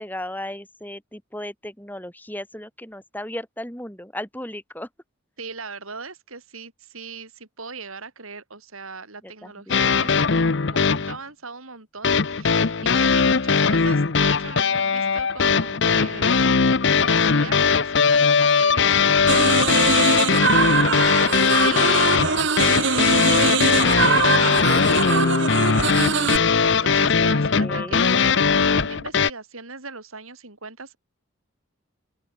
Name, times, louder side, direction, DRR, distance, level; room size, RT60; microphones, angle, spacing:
voice 1, 0.0-4.9 9.2-9.8 27.5-28.1, left 1 dB, 10° left, 6.2 m, -35 dB
voice 2, 5.4-31.0, right 4 dB, 80° right, 5.6 m, -39 dB
sound 1, 9.7-11.2 12.0-29.3, left 5 dB, 55° left, 0.8 m, -19 dB
sound 2, 19.3-26.4, right 5 dB, 55° right, 1.4 m, -22 dB
open air
head